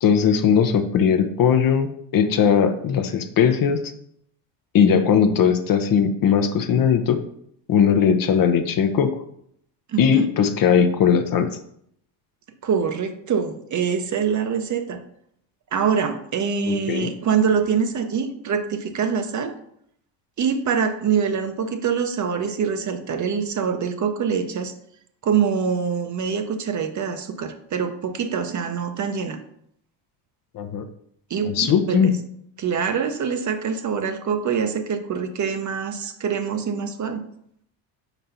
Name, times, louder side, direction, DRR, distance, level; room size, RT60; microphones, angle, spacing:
voice 1, 0.0-3.8 4.7-7.2 7.7-9.1 10.0-11.5 16.7-17.1 30.5-30.8 31.4-32.1, left 7 dB, 45° left, 9 dB, 0.7 m, -19 dB
voice 2, 9.9-10.3 12.6-15.0 15.7-19.6 20.4-24.7 25.2-29.4 31.3-32.1 32.6-37.2, right 6 dB, 35° right, 8 dB, 0.7 m, -24 dB
4.5 x 4.1 x 5.5 m, 0.69 s
cardioid pair, 105°, 49 cm